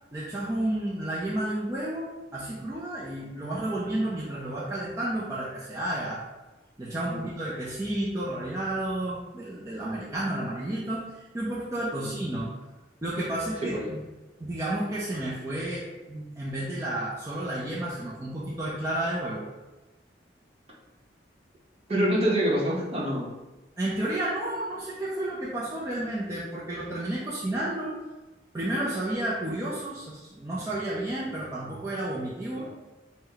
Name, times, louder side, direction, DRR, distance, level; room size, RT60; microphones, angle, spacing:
voice 1, 0.1-6.3 6.8-12.6 13.0-14.0 14.4-19.5 23.8-28.0 28.5-32.7, right 1 dB, 15° right, -7 dB, 0.5 m, -31 dB
voice 2, 13.6-13.9 21.9-23.3 32.5-32.7, equal, 35° right, -4 dB, 0.9 m, -26 dB
4.2 x 2.1 x 3.8 m, 1.1 s
head